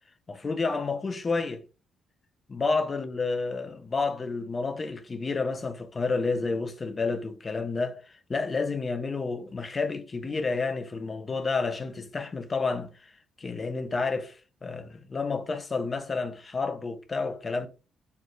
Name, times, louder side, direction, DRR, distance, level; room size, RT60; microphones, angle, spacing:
voice 1, 0.3-1.6 2.5-8.0 8.3-13.1 13.4-17.7, left 4 dB, 30° left, 0.7 m, -30 dB
4.5 x 3.4 x 2.6 m
cardioid pair, 90°, 0 cm